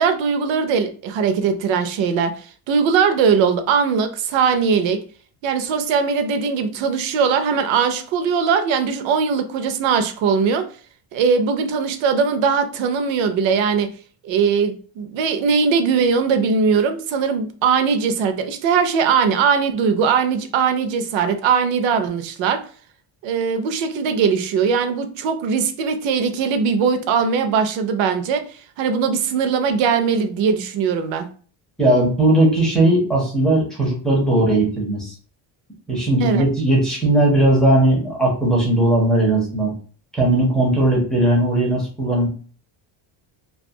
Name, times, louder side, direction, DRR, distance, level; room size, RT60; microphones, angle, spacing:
voice 1, 0.0-5.0 5.4-10.6 11.1-13.9 14.2-22.6 23.2-28.4 28.8-31.3 36.2-36.4, right 6 dB, 65° right, 8 dB, 0.5 m, -20 dB
voice 2, 31.8-35.1 35.9-39.7 40.1-42.3, right 1 dB, ahead, -4 dB, 0.4 m, -18 dB
2.3 x 2.2 x 2.6 m, 0.42 s
cardioid pair, 175°, 49 cm